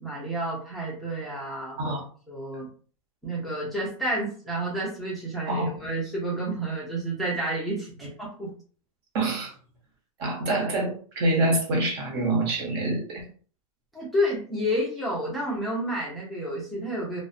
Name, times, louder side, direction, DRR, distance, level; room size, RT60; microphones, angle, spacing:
voice 1, 0.0-1.9 2.3-2.7 3.2-8.5 13.9-17.2, right 1 dB, ahead, -7 dB, 0.5 m, -30 dB
voice 2, 9.1-9.5 10.2-13.3, right 2 dB, 45° right, 0 dB, 0.9 m, -26 dB
2.5 x 2.0 x 2.5 m, 0.43 s
supercardioid pair, 155°, 18 cm